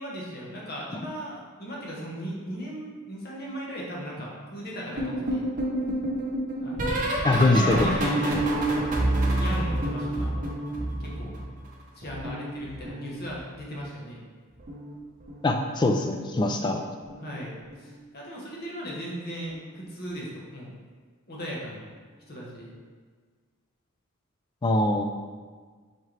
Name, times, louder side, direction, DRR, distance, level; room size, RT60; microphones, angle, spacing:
voice 1, 0.0-5.5 6.6-8.5 8.8-10.3 11.0-11.4 11.9-14.2 17.2-20.8 21.3-21.9 22.3-22.7, equal, 45° left, -4 dB, 1.0 m, -37 dB
sound 1, 5.0-11.7 12.0-13.6 14.6-15.0 15.2-15.6 17.1-17.4 17.7-18.0 19.5-19.6, right 1 dB, 40° right, 0.8 m, -28 dB
voice 2, 7.2-8.1 15.4-16.8 24.6-25.0, left 2 dB, 20° left, 4 dB, 0.3 m, -23 dB
4.2 x 3.7 x 3.2 m, 1.5 s
head